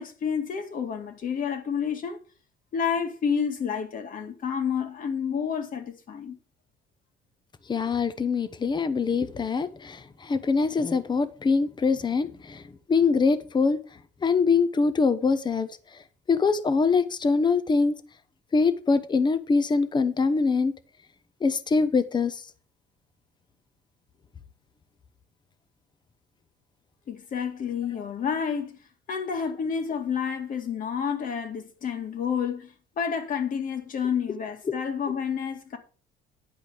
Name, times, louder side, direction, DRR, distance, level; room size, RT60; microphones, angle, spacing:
voice 1, 0.0-2.2 2.7-6.4 27.1-28.8 29.1-35.8, left 7 dB, 55° left, 2.3 m, -29 dB
voice 2, 7.7-12.6 12.9-13.8 14.2-15.7 16.3-18.0 18.5-20.7 21.4-22.4 34.7-34.8, left 4 dB, 25° left, 1.0 m, -23 dB
10.5 x 5.2 x 6.4 m
cardioid pair, 110°, 17 cm